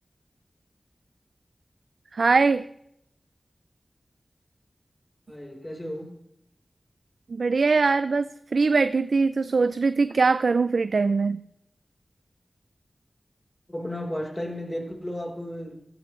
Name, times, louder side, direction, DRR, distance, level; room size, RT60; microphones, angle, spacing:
voice 1, 2.1-2.6 7.3-11.4, right 4 dB, 85° right, 13 dB, 0.4 m, -22 dB
voice 2, 5.3-6.2 13.7-15.8, left 1 dB, 20° left, 2 dB, 3.7 m, -34 dB
16.0 x 13.0 x 3.2 m, 0.76 s
cardioid pair, 40°, 0 cm